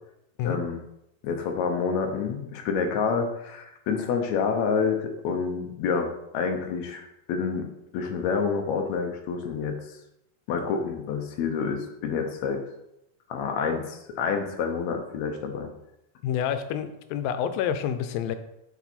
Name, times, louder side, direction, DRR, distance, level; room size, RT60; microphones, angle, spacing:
voice 1, 0.4-0.8 1.2-7.7 7.9-9.8 10.5-12.6 13.3-15.7, left 5 dB, 70° left, 4 dB, 1.8 m, -28 dB
voice 2, 16.2-18.4, left 9 dB, 90° left, 10 dB, 2.4 m, -28 dB
7.2 x 5.6 x 4.2 m, 0.84 s
omnidirectional pair, 4.0 m